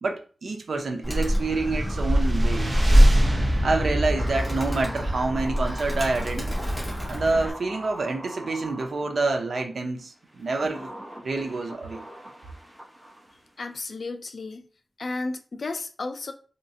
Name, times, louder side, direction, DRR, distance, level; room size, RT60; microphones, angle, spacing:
voice 1, 0.0-2.7 3.6-6.5 7.1-10.9 11.2-12.0, right 3 dB, 75° right, 0.6 m, -27 dB
Animal, 1.0-7.5, equal, 5° left, 1.2 m, -23 dB
sound 1, 1.3-6.6, equal, 40° right, 0.9 m, -30 dB
sound 2, 4.2-9.6 10.3-13.5 13.8-13.9, right 1 dB, 15° right, 1.0 m, -41 dB
voice 2, 13.6-14.7 15.0-16.3, left 3 dB, 65° left, 0.4 m, -33 dB
3.2 x 2.9 x 2.8 m
wide cardioid pair, 120°, 0 cm